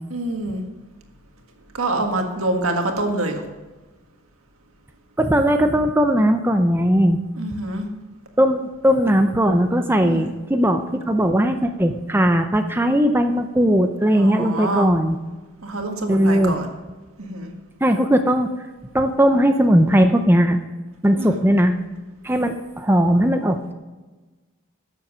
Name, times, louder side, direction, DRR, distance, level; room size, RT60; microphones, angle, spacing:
voice 1, 0.1-0.6 1.7-3.4 7.4-7.9 10.0-10.3 14.1-14.9 15.6-16.7 17.2-17.5 21.2-21.4, right 2 dB, 80° right, 4 dB, 1.7 m, -26 dB
voice 2, 5.2-7.2 8.4-15.2 16.1-16.5 17.8-18.5 18.9-20.6 21.0-21.8 22.2-23.7, equal, 10° right, 6 dB, 0.5 m, -18 dB
13.0 x 7.2 x 6.2 m, 1.2 s
head